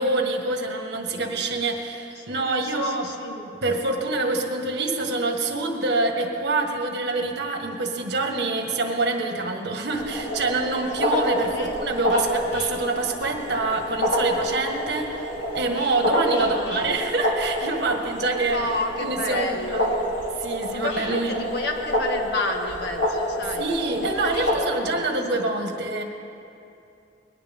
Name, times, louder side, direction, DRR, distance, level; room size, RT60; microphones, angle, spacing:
voice 1, 0.0-3.1 3.6-18.7 19.0-19.9 20.4-21.4 23.4-26.0, right 2 dB, 65° right, 3 dB, 1.7 m, -26 dB
voice 2, 2.2-3.5 11.5-11.7 16.5-17.0 18.5-20.1 20.7-23.7 24.0-24.7 24.9-25.4, left 2 dB, 65° left, 2 dB, 1.7 m, -31 dB
sound 1, 9.9-24.5, equal, 90° left, 3.0 m, -28 dB
20.5 x 17.0 x 3.7 m, 2.7 s
head